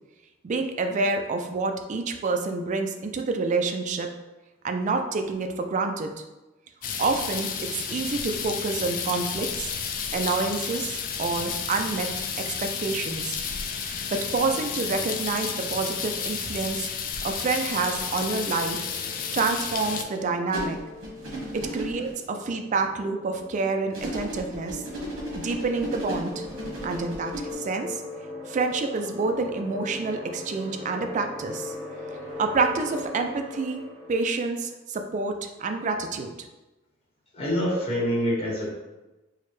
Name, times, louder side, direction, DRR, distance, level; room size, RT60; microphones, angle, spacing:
voice 1, 0.4-4.1 4.6-6.1 7.0-9.7 10.1-13.4 13.8-16.9 17.2-18.9 19.3-20.8 21.5-24.8 25.3-26.5 26.8-28.0 28.5-31.7 32.4-33.8 34.1-36.3 37.7-37.8, right 3 dB, 40° right, 5 dB, 0.3 m, -28 dB
sound 1, 6.8-20.0, left 6 dB, 45° left, 0.3 m, -32 dB
sound 2, 17.8-34.3, left 2 dB, ahead, 1.1 m, -40 dB
sound 3, 20.5-22.1 23.9-27.5, right 1 dB, 80° right, 1.0 m, -35 dB
voice 2, 37.3-38.8, equal, 30° left, -6 dB, 1.0 m, -26 dB
4.6 x 2.2 x 3.0 m, 1.1 s
head